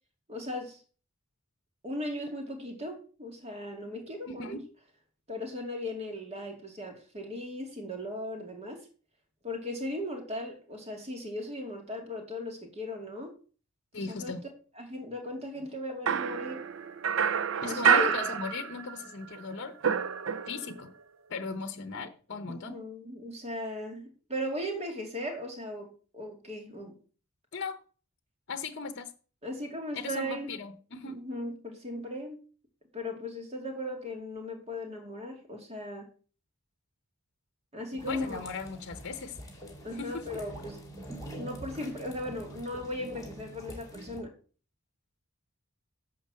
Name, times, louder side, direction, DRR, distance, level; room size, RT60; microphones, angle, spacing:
voice 1, 0.3-0.8 1.8-4.6 5.3-8.9 9.4-13.3 14.0-14.3 14.8-16.6 17.7-18.2 22.5-25.9 26.1-27.0 29.4-30.5 31.0-32.4 32.9-36.1 37.7-38.4 39.8-40.8 41.4-44.3, left 1 dB, 30° right, 2.6 m, -37 dB
voice 2, 4.3-4.6 13.9-14.4 17.6-19.7 20.5-20.9 21.3-22.8 27.5-27.8 28.5-29.1 29.9-31.2 38.1-39.4 40.0-40.2, left 4 dB, 55° left, 0.8 m, -37 dB
sound 1, 16.1-19.1 19.3-20.8, right 7 dB, 65° right, 0.5 m, -28 dB
sound 2, 38.0-44.2, right 1 dB, 15° left, 3.1 m, -45 dB
11.0 x 3.8 x 7.6 m
head